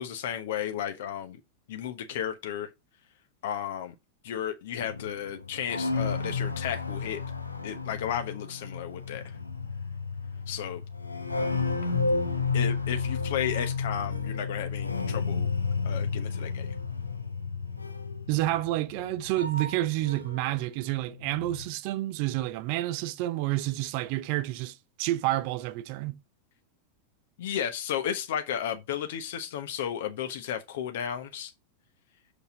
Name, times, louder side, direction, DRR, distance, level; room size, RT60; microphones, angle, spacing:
voice 1, 0.0-1.4 1.7-2.7 3.4-3.9 4.2-7.2 7.6-9.4 10.5-10.8 12.5-15.5 15.8-16.7 27.4-31.5, left 9 dB, 55° left, 1.1 m, -33 dB
sound 1, 4.8-20.6 20.8-21.7, left 4 dB, 80° left, 1.3 m, -32 dB
voice 2, 18.3-26.2, right 16 dB, 45° right, 0.6 m, -29 dB
6.7 x 5.3 x 5.7 m
figure-of-eight pair, 90°, 0 cm